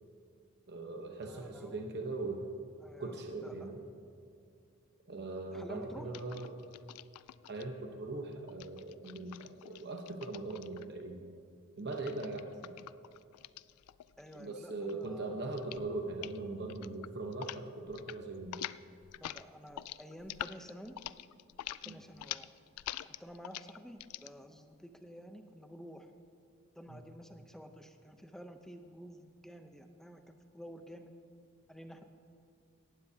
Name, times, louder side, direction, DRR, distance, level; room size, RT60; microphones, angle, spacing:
voice 1, 0.7-2.5 3.0-3.8 5.1-6.6 7.4-11.2 11.8-12.8 14.3-18.7 21.8-21.9 26.9-27.0, right 2 dB, 50° right, 2 dB, 1.0 m, -40 dB
voice 2, 1.2-1.9 2.8-3.7 5.5-6.1 14.2-15.6 19.2-21.0 21.8-22.5 23.0-26.1 26.7-31.1 31.7-32.0, equal, ahead, 6 dB, 0.7 m, -50 dB
sound 1, 6.1-7.6 8.5-11.0 11.9-14.4 14.7-15.1 15.5-15.9 16.1-16.4 16.7-17.6 17.9-18.2 18.4-24.3, left 13 dB, 85° left, 0.3 m, -45 dB
18.0 x 15.0 x 2.8 m, 2.4 s
head